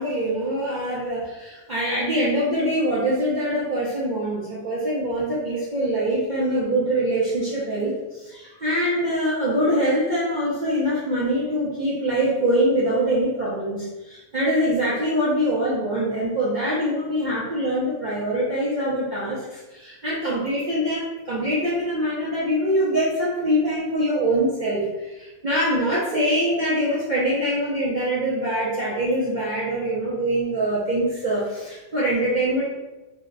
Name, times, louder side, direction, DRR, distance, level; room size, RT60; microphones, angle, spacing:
voice 1, 0.0-32.6, right 1 dB, 45° right, -8 dB, 0.6 m, -24 dB
2.8 x 2.1 x 3.8 m, 1.1 s
omnidirectional pair, 1.4 m